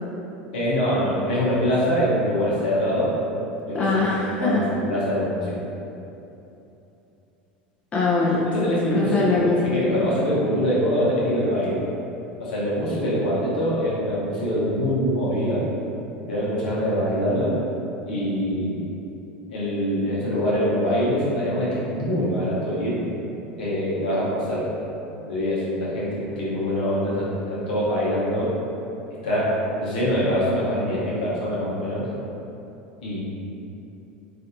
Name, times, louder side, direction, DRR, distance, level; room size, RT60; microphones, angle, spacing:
voice 1, 0.5-3.2 3.7-4.0 4.4-5.6 8.3-11.7 12.4-15.6 16.3-17.5 18.1-18.9 19.5-23.0 23.6-24.6 25.3-28.5 29.2-32.0 33.0-33.2, equal, 75° left, -8 dB, 0.9 m, -24 dB
voice 2, 3.7-4.6 7.9-9.6, left 3 dB, 30° left, -5 dB, 0.5 m, -22 dB
3.3 x 2.5 x 2.7 m, 2.9 s
hypercardioid pair, 85°, 5 cm